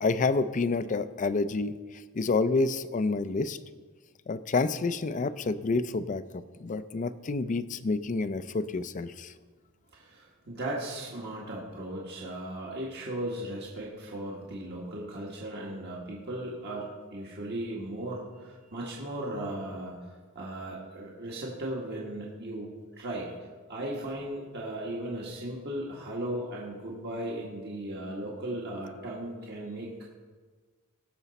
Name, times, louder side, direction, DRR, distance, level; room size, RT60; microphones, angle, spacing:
voice 1, 0.0-1.7 2.1-3.6 4.3-9.3, left 3 dB, 35° left, 14 dB, 0.4 m, -28 dB
voice 2, 9.9-23.3 23.7-29.9, right 1 dB, 50° right, -4 dB, 1.6 m, -37 dB
18.0 x 6.8 x 4.1 m, 1.4 s
head